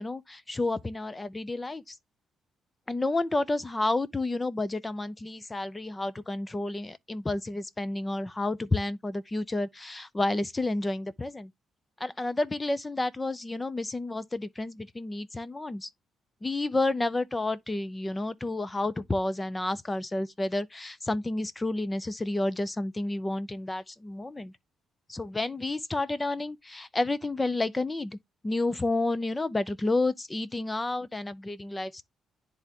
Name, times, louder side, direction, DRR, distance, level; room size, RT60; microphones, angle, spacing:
voice 1, 0.0-2.0 2.9-11.5 12.0-15.9 16.4-24.5 25.1-28.2 28.4-32.0, left 2 dB, 15° left, 0.5 m, -30 dB
10.5 x 3.4 x 2.9 m
cardioid pair, 110°, 0 cm